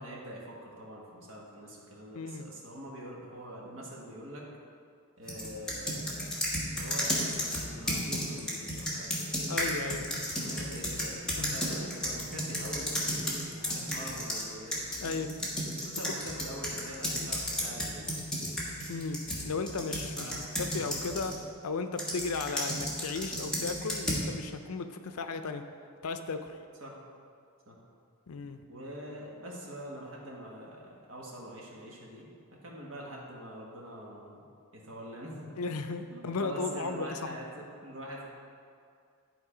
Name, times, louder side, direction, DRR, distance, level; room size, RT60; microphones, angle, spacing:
voice 1, 0.0-4.5 5.2-6.3 6.7-9.3 10.4-15.2 15.8-18.4 20.2-20.4 20.9-21.1 26.8-26.9 27.7-27.8 28.7-34.4 34.7-35.6 36.1-38.2, equal, 60° right, -3 dB, 1.5 m, -44 dB
voice 2, 2.1-2.5 9.5-10.2 11.3-11.6 15.0-15.3 16.2-16.4 17.2-17.3 18.9-20.3 20.6-21.3 21.6-25.7 26.0-26.6 28.3-28.6 35.6-37.7, left 4 dB, 85° left, 8 dB, 0.5 m, -35 dB
sound 1, 5.3-14.4 14.7-21.4 22.0-24.3, equal, 5° left, 1.3 m, -33 dB
11.0 x 3.9 x 5.0 m, 2.3 s
head